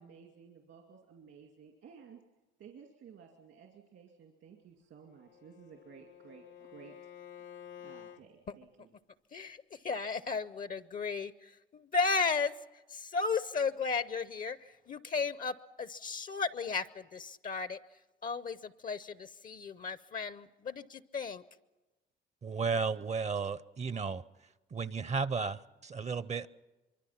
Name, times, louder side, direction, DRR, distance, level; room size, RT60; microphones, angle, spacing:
voice 1, 0.0-2.2 2.6-7.1 7.8-8.9, right 7 dB, 75° right, 2.4 m, -55 dB
Bowed string instrument, 5.1-8.3, left 9 dB, 75° left, 1.0 m, -51 dB
voice 2, 9.3-17.8 18.2-21.4, left 4 dB, 45° left, 0.6 m, -35 dB
voice 3, 22.4-24.2 24.7-26.5, right 5 dB, 35° right, 0.6 m, -34 dB
24.5 x 24.0 x 5.8 m
cardioid pair, 90°, 20 cm